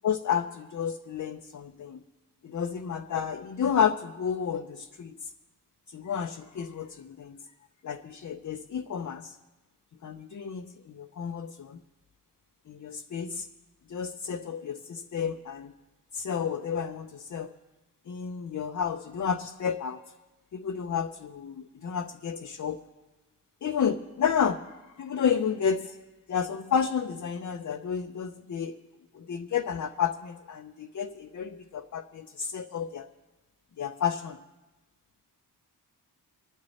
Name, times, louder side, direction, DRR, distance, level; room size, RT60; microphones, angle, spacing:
voice 1, 0.0-2.0 2.4-5.3 5.9-7.5 7.8-9.4 10.0-11.8 12.7-13.5 13.9-15.7 16.1-17.5 18.1-20.0 20.5-22.8 23.6-26.0 26.3-28.8 29.1-33.1 33.8-34.4, left 7 dB, 50° left, 5 dB, 0.6 m, -31 dB
25.0 x 9.7 x 4.2 m, 1.1 s
wide cardioid pair, 110°, 38 cm